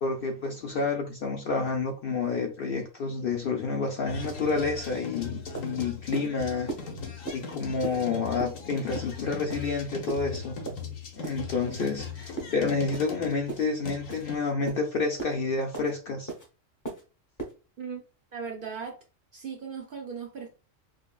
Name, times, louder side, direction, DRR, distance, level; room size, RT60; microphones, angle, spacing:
voice 1, 0.0-6.7 7.3-10.6 11.2-16.3, left 4 dB, 60° left, 0.6 m, -29 dB
sound 1, 4.1-14.4, left 4 dB, 85° left, 1.4 m, -39 dB
sound 2, 5.0-5.1 5.5-5.7 6.1-6.3 6.7-6.8 7.3-7.4 7.8-8.0 8.4-8.6 8.9-9.1 9.5-9.7 10.1-10.2 10.7-10.8 11.2-11.4 11.8-12.0 12.4-12.5 12.9-13.1 13.5-13.7 14.1-14.2 14.7-14.8 15.2-15.3 15.7-15.9 16.3-16.5 16.8-17.0 17.4-17.5, right 3 dB, 15° left, 0.8 m, -36 dB
voice 2, 18.3-19.0 19.3-20.5, right 6 dB, 55° right, 0.7 m, -37 dB
4.8 x 2.3 x 2.3 m
omnidirectional pair, 1.3 m